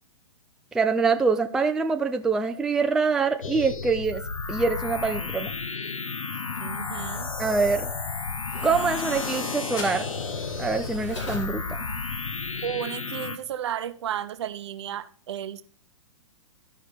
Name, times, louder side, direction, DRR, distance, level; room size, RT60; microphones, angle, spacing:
voice 1, 0.7-4.2 4.5-5.5 7.4-7.9 8.6-10.1 10.6-11.8, right 4 dB, 5° right, 6 dB, 0.3 m, -24 dB
sound 1, 3.4-13.4, left 4 dB, 85° left, 0.7 m, -32 dB
Tools, 6.3-12.6, left 2 dB, 65° left, 4.9 m, -43 dB
voice 2, 6.6-7.3 12.6-15.6, right 10 dB, 60° right, 12 dB, 0.7 m, -33 dB
sound 2, 7.4-12.5, left 3 dB, 25° left, 2.0 m, -47 dB
13.0 x 5.1 x 4.2 m, 0.42 s
figure-of-eight pair, 115°, 17 cm